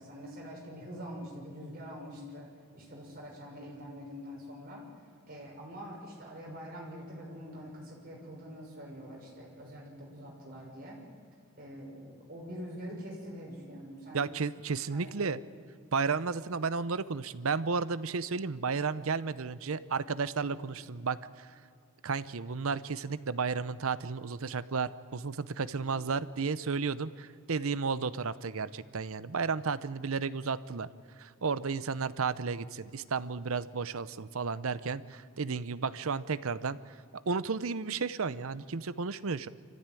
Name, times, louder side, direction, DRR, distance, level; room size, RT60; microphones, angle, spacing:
voice 1, 0.0-4.8 5.3-11.0 11.6-14.3 14.9-15.4 20.4-20.6, equal, 40° right, -2 dB, 6.3 m, -45 dB
voice 2, 14.1-15.4 15.9-21.5 22.0-30.9 31.2-36.9 37.3-39.5, right 5 dB, 75° right, 15 dB, 0.7 m, -33 dB
26.0 x 15.0 x 9.2 m, 2.3 s
head